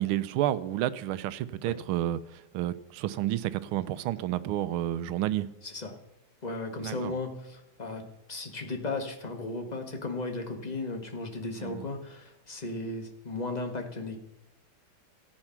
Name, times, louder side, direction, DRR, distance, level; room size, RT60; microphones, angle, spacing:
voice 1, 0.0-5.5 6.8-7.1 11.6-11.9, right 13 dB, 90° right, 16 dB, 1.5 m, -30 dB
voice 2, 5.6-5.9 6.4-8.0 8.3-14.2, left 2 dB, 25° left, 4 dB, 1.3 m, -35 dB
14.5 x 8.8 x 5.8 m, 0.86 s
omnidirectional pair, 2.3 m